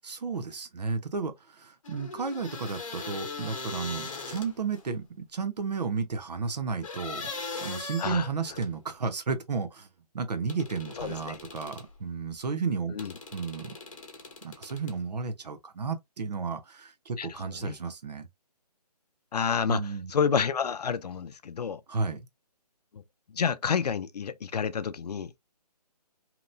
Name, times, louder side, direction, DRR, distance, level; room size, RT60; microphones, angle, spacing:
voice 1, 0.0-7.3 7.6-9.9 10.1-13.0 13.3-13.8 14.4-18.3 19.7-20.1 21.9-22.2, right 5 dB, 80° right, 0.7 m, -33 dB
sound 1, 1.8-4.8 6.8-8.8 10.5-11.9 13.0-15.0, left 3 dB, 50° left, 0.9 m, -40 dB
voice 2, 11.0-11.4 12.9-13.1 17.2-17.7 19.3-21.8 22.9-23.0 23.3-25.3, left 6 dB, 75° left, 0.5 m, -29 dB
2.9 x 2.1 x 2.6 m
hypercardioid pair, 170°, 21 cm